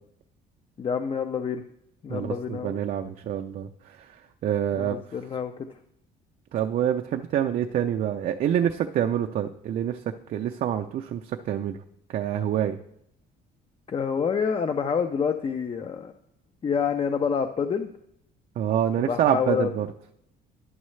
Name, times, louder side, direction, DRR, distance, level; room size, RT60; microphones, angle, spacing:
voice 1, 0.8-1.6 2.0-2.7 4.7-5.5 13.9-16.1 16.6-17.9 19.1-19.7, left 6 dB, 30° left, 7 dB, 0.5 m, -27 dB
voice 2, 2.1-5.0 6.5-10.0 10.3-11.8 12.1-12.8 18.6-19.9, right 10 dB, 55° right, 4 dB, 0.5 m, -26 dB
11.0 x 6.3 x 3.2 m, 0.77 s
cardioid pair, 110°, 17 cm